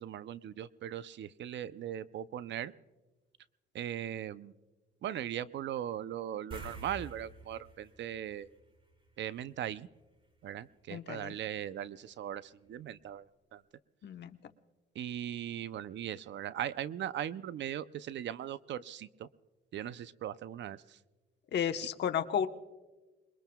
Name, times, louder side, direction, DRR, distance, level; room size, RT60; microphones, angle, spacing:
voice 1, 0.0-2.7 3.7-4.5 5.0-8.5 9.2-9.9 10.4-12.4 12.7-13.2 13.5-13.6 15.0-19.3 19.7-20.8, right 10 dB, 65° right, 15 dB, 0.6 m, -39 dB
sound 1, 6.5-9.3 9.6-9.8 12.7-12.8 13.1-13.2, right 1 dB, 25° right, 2.4 m, -49 dB
voice 2, 10.9-11.4 14.0-14.3 21.5-22.5, left 8 dB, 60° left, 7 dB, 1.0 m, -32 dB
28.5 x 22.0 x 2.3 m, 1.2 s
cardioid pair, 90°, 20 cm